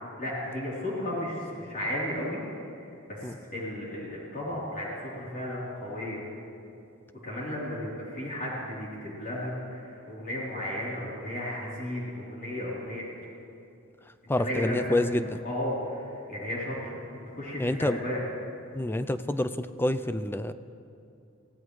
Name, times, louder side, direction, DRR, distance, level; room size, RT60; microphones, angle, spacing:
voice 1, 0.2-2.4 2.8-6.2 7.2-13.0 14.4-14.9 15.4-18.2, left 1 dB, 40° left, -7 dB, 3.5 m, -34 dB
voice 2, 14.3-15.3 17.6-18.0 18.7-20.5, left 1 dB, 10° left, 12 dB, 0.4 m, -27 dB
24.0 x 16.5 x 3.2 m, 2.6 s
head